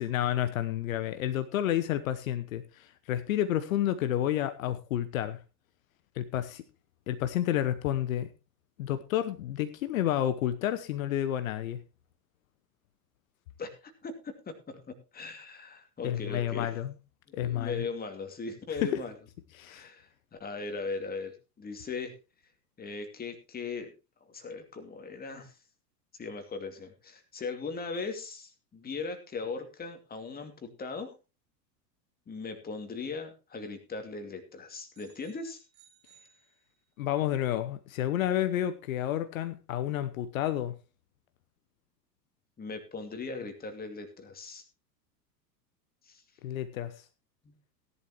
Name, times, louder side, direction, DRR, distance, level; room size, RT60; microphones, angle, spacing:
voice 1, 0.0-5.4 6.2-6.6 7.1-8.3 8.8-11.8 16.0-16.9 17.3-17.8 18.8-19.0 19.6-19.9 37.0-40.7 46.4-47.0, left 11 dB, 55° left, 1.0 m, -30 dB
voice 2, 13.6-14.8 15.1-16.7 17.3-19.1 19.7-20.1 20.4-22.1 22.8-23.9 24.2-25.5 26.2-31.1 32.3-35.6 42.6-44.6 46.1-46.2 47.4-47.5, left 4 dB, 20° left, 2.4 m, -39 dB
sound 1, 34.9-37.1, right 8 dB, 40° right, 4.7 m, -63 dB
17.0 x 11.0 x 3.0 m
figure-of-eight pair, 85°, 50 cm